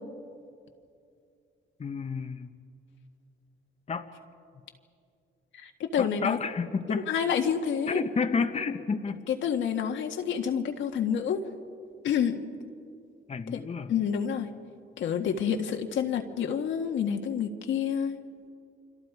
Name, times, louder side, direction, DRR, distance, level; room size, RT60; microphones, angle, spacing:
voice 1, 1.8-2.5 3.9-4.1 6.0-7.1 7.9-9.2 13.3-13.9, left 5 dB, 30° left, 6 dB, 1.1 m, -30 dB
voice 2, 5.5-6.4 6.9-8.0 9.3-11.4 12.0-12.4 13.5-13.6 13.9-14.5 15.0-18.2, left 8 dB, 75° left, 4 dB, 1.7 m, -28 dB
29.5 x 25.0 x 4.8 m, 2.4 s
cardioid pair, 90°, 20 cm